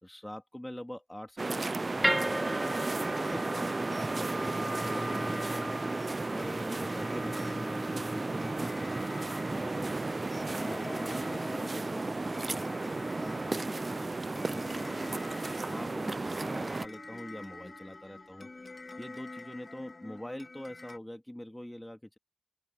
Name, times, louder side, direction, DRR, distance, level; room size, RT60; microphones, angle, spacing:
voice 1, 0.0-2.8 3.1-5.8 6.3-8.9 9.5-10.0 10.5-15.2 15.7-18.5 19.0-22.2, left 1 dB, 10° left, 3.3 m, -44 dB
sound 1, 1.4-16.9, right 3 dB, 50° right, 0.8 m, -34 dB
sound 2, 2.0-18.2, right 1 dB, 10° right, 2.9 m, -39 dB
sound 3, 2.4-21.0, left 3 dB, 55° left, 3.2 m, -48 dB
open air
cardioid pair, 40°, 0 cm